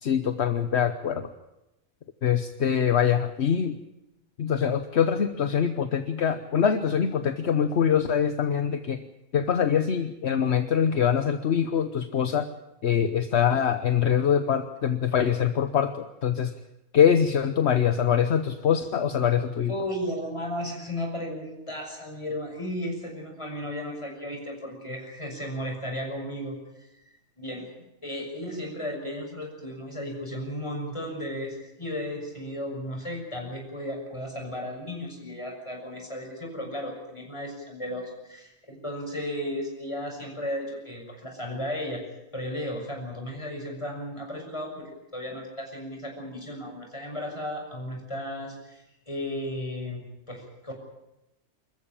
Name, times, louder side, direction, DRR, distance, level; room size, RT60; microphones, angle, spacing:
voice 1, 0.0-1.3 2.2-3.8 4.4-9.0 9.3-12.5 12.8-16.5 16.9-19.7, left 8 dB, 65° left, 9 dB, 1.2 m, -24 dB
voice 2, 19.7-27.7 28.0-42.0 42.3-50.7, left 1 dB, 25° left, 1 dB, 6.5 m, -35 dB
26.0 x 14.5 x 8.7 m, 0.94 s
omnidirectional pair, 1.2 m